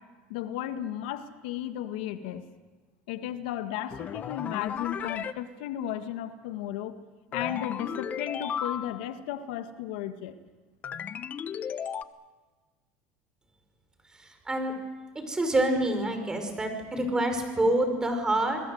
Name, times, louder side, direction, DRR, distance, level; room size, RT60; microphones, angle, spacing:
voice 1, 0.3-2.4 3.1-7.0 7.3-10.4, left 11 dB, 85° left, 9 dB, 1.7 m, -34 dB
sound 1, 3.9-5.3 7.3-9.1 10.8-12.0, left 8 dB, 35° left, 1.0 m, -35 dB
voice 2, 14.2-14.7 15.2-18.6, right 1 dB, 15° right, 6 dB, 5.4 m, -27 dB
28.0 x 21.0 x 7.9 m, 1.3 s
supercardioid pair, 115°, 5 cm